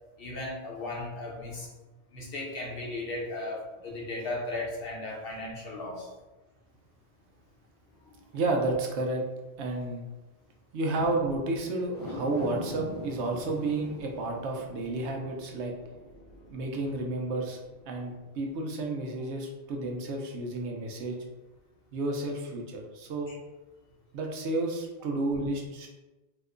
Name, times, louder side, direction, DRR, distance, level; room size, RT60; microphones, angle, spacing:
voice 1, 0.2-1.7 2.1-6.1 8.1-8.2 10.9-11.1 23.3-23.4, left 2 dB, 60° left, -2 dB, 0.9 m, -36 dB
voice 2, 8.3-9.2 9.6-10.1 10.7-15.7 16.5-17.6 17.9-21.2 21.9-23.3 24.1-25.9, right 2 dB, 90° right, 1 dB, 0.9 m, -31 dB
sound 1, 11.8-18.3 18.8-18.9, left 1 dB, 25° left, 0.5 m, -43 dB
2.9 x 2.2 x 3.6 m, 1.1 s
omnidirectional pair, 1.1 m